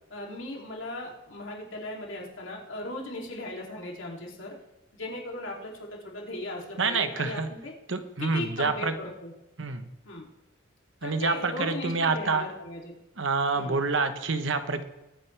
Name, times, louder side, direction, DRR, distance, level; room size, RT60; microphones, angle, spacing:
voice 1, 0.1-4.5 4.9-7.7 8.2-9.3 10.0-10.3 11.0-12.9 13.5-13.8, left 1 dB, 70° left, -2 dB, 2.9 m, -37 dB
voice 2, 6.8-7.5 7.9-8.9 9.6-9.9 11.0-12.4 13.2-14.8, right 4 dB, 65° right, 9 dB, 1.1 m, -27 dB
22.0 x 9.4 x 3.4 m, 0.96 s
head